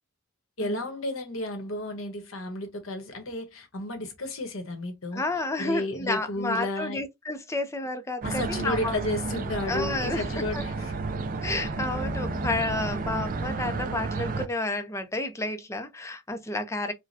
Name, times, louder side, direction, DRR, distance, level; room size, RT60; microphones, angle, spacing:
voice 1, 0.6-5.2 5.6-7.0 8.2-10.9, left 1 dB, 75° left, 1.2 m, -32 dB
voice 2, 5.1-8.9 9.7-10.7 11.4-16.9, left 2 dB, 15° left, 0.5 m, -31 dB
sound 1, 8.2-14.5, right 3 dB, 40° right, 0.4 m, -31 dB
4.8 x 2.2 x 2.6 m
head